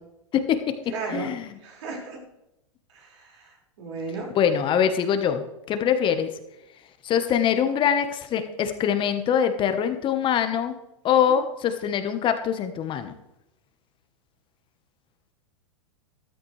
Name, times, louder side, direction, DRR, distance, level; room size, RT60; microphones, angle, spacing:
voice 1, 0.3-0.8 1.1-1.5 4.3-6.3 7.0-10.8 11.0-13.1, left 8 dB, 30° left, 8 dB, 1.2 m, -23 dB
voice 2, 0.9-1.3 1.6-2.2 2.9-3.5 3.8-4.3 11.3-11.4, right 4 dB, 70° right, -1 dB, 5.4 m, -34 dB
13.5 x 13.0 x 3.3 m, 0.90 s
hypercardioid pair, 120°, 16 cm